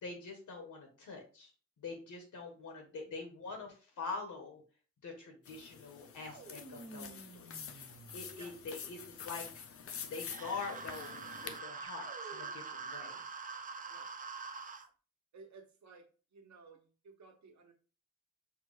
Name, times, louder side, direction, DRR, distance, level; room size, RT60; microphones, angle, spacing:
voice 1, 0.0-1.5 1.8-4.6 5.0-7.6 8.1-9.5 9.8-13.2, left 4 dB, 85° left, 3 dB, 1.1 m, -45 dB
sound 1, 5.5-11.6, left 7 dB, 50° left, 0.4 m, -47 dB
sound 2, 6.2-8.7 11.8-12.8, right 3 dB, 45° right, 1.1 m, -53 dB
sound 3, 10.2-14.9, right 5 dB, 30° right, 0.4 m, -44 dB
voice 2, 15.3-17.7, right 4 dB, 70° right, 3 dB, 1.0 m, -57 dB
5.9 x 2.2 x 3.2 m, 0.36 s
wide cardioid pair, 170°, 30 cm